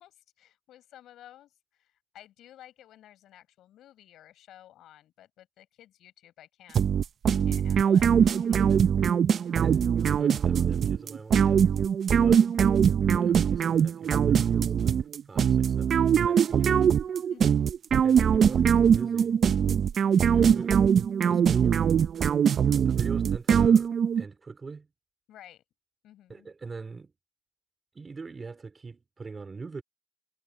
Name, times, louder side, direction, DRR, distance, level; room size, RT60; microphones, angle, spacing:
voice 1, 0.0-6.8 7.4-8.8 9.3-9.6 17.3-17.7 25.3-25.6 26.0-26.5, left 12 dB, 80° left, 4.9 m, -53 dB
sound 1, 6.7-24.2, right 8 dB, 55° right, 0.6 m, -22 dB
voice 2, 9.6-9.9 10.2-11.6 12.2-12.5 13.2-14.5 14.8-15.0 15.3-16.9 18.0-19.4 20.1-20.8 21.3-21.8 22.7-24.9 26.3-27.1 28.0-29.8, right 4 dB, 30° right, 3.6 m, -42 dB
cardioid pair, 90°, 0 cm